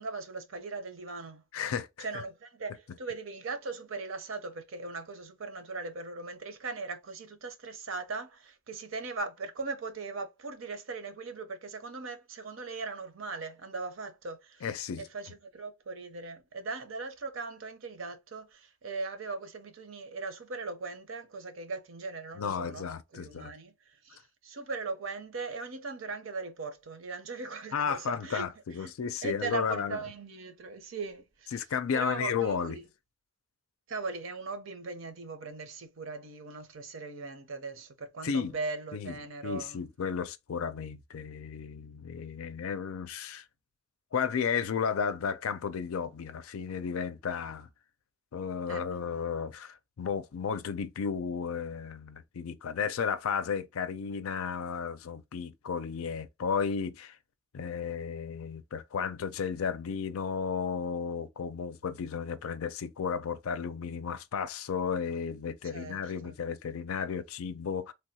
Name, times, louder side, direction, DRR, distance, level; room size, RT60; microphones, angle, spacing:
voice 1, 0.0-1.4 2.0-28.5 28.8-28.9 29.2-31.6 31.9-32.9 33.9-39.8 48.7-48.8 65.7-66.4, right 3 dB, 70° right, 0.7 m, -39 dB
voice 2, 1.5-1.9 14.6-15.0 22.4-23.5 27.7-30.0 31.5-32.8 38.2-38.5 38.9-39.1 39.4-43.4 44.1-47.7 48.3-57.2 57.5-67.9, left 6 dB, 85° left, 0.4 m, -33 dB
3.4 x 2.3 x 2.7 m
head